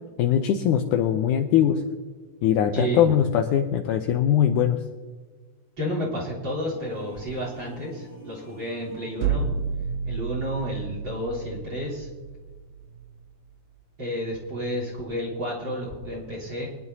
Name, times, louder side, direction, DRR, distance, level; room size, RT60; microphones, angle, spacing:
voice 1, 0.2-1.8 2.4-4.8, left 9 dB, 80° left, 5 dB, 1.9 m, -21 dB
voice 2, 2.7-3.1 5.8-9.5 10.0-12.1 14.0-16.7, equal, 30° right, -4 dB, 3.9 m, -31 dB
sound 1, 6.6-9.5, equal, 35° left, 2.5 m, -48 dB
sound 2, 9.2-13.1, right 6 dB, 80° right, 2.5 m, -31 dB
23.5 x 10.5 x 2.8 m, 1.5 s
omnidirectional pair, 4.1 m